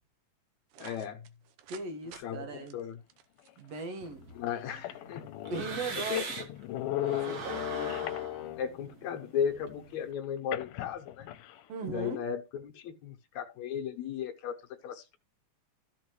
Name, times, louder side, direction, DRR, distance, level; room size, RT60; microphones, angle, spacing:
sound 1, 0.7-2.2 2.7-4.0, right 9 dB, 75° right, 2.3 m, -51 dB
voice 1, 0.8-1.2 2.1-3.0 4.4-5.2 6.1-6.2 8.6-11.3 11.8-14.6 14.8-15.2, left 8 dB, 70° left, 2.1 m, -35 dB
voice 2, 1.7-2.8 3.6-4.2 5.5-6.2 7.3-8.1 11.7-12.2, right 3 dB, 60° right, 2.2 m, -38 dB
sound 2, 3.8-3.9 4.5-4.6 4.8-8.8 10.5-11.6, left 13 dB, 90° left, 2.2 m, -37 dB
sound 3, 4.0-6.6 7.0-10.0, right 4 dB, 45° right, 1.3 m, -42 dB
14.5 x 4.9 x 3.1 m
omnidirectional pair, 3.6 m